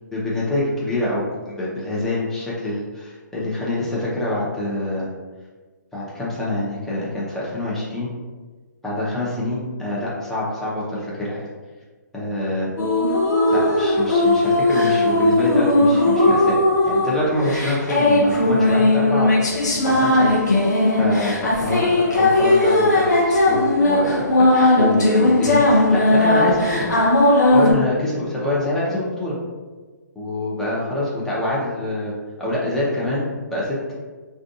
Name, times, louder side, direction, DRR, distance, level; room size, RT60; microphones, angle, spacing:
voice 1, 0.1-5.1 5.9-8.1 8.8-11.5 12.1-12.7 13.5-16.6 16.8-19.3 19.8-20.3 21.0-26.9 27.5-29.4 30.1-32.1 32.4-33.2 33.5-33.8, left 1 dB, 5° left, -8 dB, 0.5 m, -25 dB
sound 1, 12.8-27.7, left 2 dB, 65° left, 0.7 m, -17 dB
2.5 x 2.3 x 2.6 m, 1.3 s
figure-of-eight pair, 135°, 10 cm